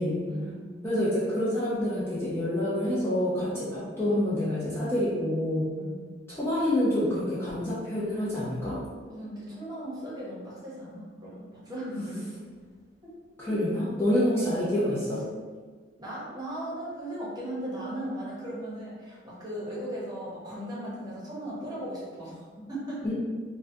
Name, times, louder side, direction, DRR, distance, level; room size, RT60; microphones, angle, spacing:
voice 1, 0.3-0.8 5.8-6.2 9.1-12.3 13.4-13.6 14.2-14.6 16.0-23.0, right 1 dB, 20° right, -7 dB, 0.9 m, -37 dB
voice 2, 0.8-5.7 6.3-8.8 13.4-15.2 23.0-23.1, left 1 dB, 15° left, -10 dB, 0.6 m, -27 dB
3.7 x 2.2 x 2.7 m, 1.5 s
head